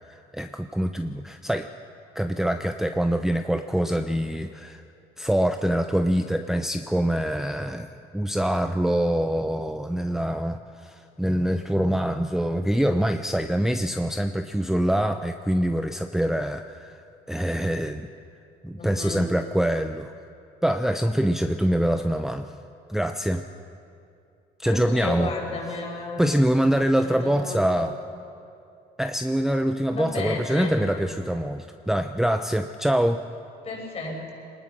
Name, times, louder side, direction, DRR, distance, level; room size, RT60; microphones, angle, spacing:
voice 1, 0.3-1.7 2.1-4.8 5.2-17.0 17.3-18.1 18.6-20.1 20.6-22.5 22.9-23.4 24.6-25.3 26.2-27.9 29.0-33.2, equal, 5° right, 6 dB, 0.7 m, -24 dB
voice 2, 18.8-19.2 24.6-26.4 27.0-28.0 29.9-30.8 33.6-34.3, left 3 dB, 40° left, 0 dB, 6.4 m, -32 dB
23.5 x 19.5 x 6.2 m, 2.5 s
cardioid pair, 110°, 17 cm